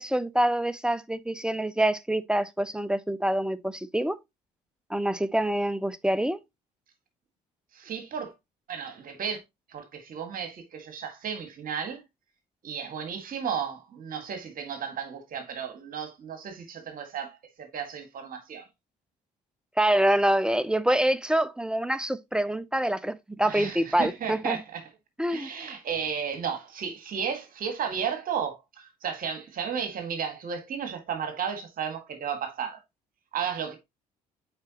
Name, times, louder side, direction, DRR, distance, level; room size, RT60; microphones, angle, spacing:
voice 1, 0.0-4.2 4.9-6.4 19.8-24.6 25.2-25.5, right 1 dB, 5° right, 0.5 m, -26 dB
voice 2, 7.7-8.3 8.7-9.4 9.7-12.0 12.6-18.7 23.4-24.9 25.3-32.8 33.3-33.8, right 7 dB, 45° right, 1.8 m, -34 dB
7.4 x 4.8 x 2.9 m
figure-of-eight pair, 50°, 20 cm